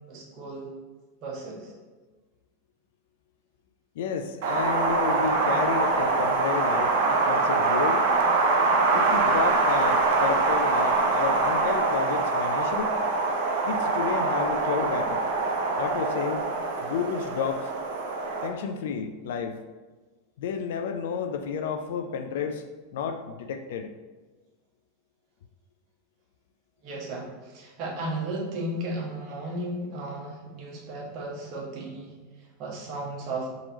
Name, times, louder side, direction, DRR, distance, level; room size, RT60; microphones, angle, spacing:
voice 1, 0.1-0.7 1.2-1.7 5.5-5.7 26.8-33.5, right 1 dB, 45° right, -3 dB, 1.2 m, -35 dB
voice 2, 4.0-8.1 8.9-12.9 13.7-15.3 15.8-16.5 16.8-17.7 18.4-19.6 20.4-22.6 22.9-23.9, left 6 dB, 65° left, 7 dB, 0.3 m, -31 dB
Wind, 4.4-18.5, right 3 dB, 65° right, 0.6 m, -24 dB
3.8 x 2.9 x 3.8 m, 1.3 s
hypercardioid pair, 90°, 0 cm